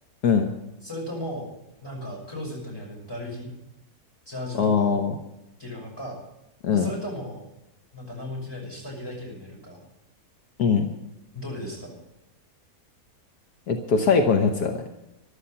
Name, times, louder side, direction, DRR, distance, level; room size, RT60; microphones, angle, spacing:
voice 1, 0.8-1.5 1.8-3.5 4.3-5.0 5.6-6.2 6.7-7.4 7.9-9.8 11.3-12.0, left 1 dB, 15° left, -1 dB, 5.8 m, -36 dB
voice 2, 4.5-5.1 6.6-6.9 10.6-10.9 13.7-15.0, left 5 dB, 75° left, 5 dB, 1.6 m, -21 dB
13.5 x 12.0 x 5.7 m, 0.89 s
omnidirectional pair, 1.7 m